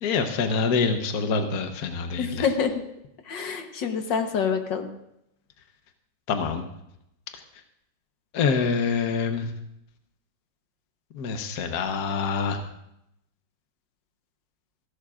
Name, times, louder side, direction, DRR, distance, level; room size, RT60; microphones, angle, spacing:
voice 1, 0.0-2.5 6.3-6.6 7.3-7.4 8.3-9.5 11.1-12.6, left 5 dB, 55° left, 5 dB, 1.4 m, -26 dB
voice 2, 2.2-2.7 3.3-4.9, left 6 dB, 75° left, 5 dB, 1.8 m, -26 dB
28.5 x 11.5 x 2.5 m, 0.80 s
omnidirectional pair, 2.0 m